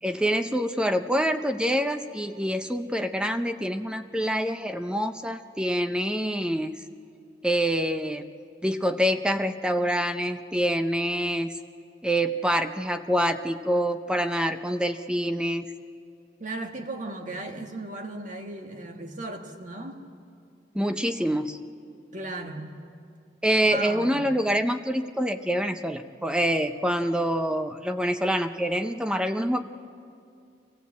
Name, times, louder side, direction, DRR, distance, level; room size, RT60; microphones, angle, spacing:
voice 1, 0.0-6.7 7.4-8.3 8.6-11.5 12.0-15.7 20.7-21.6 23.4-29.6, equal, 5° right, 8 dB, 0.5 m, -26 dB
voice 2, 16.4-20.0 22.1-22.8 23.6-24.3, right 2 dB, 45° right, 4 dB, 1.7 m, -36 dB
24.5 x 16.0 x 8.3 m, 2.4 s
head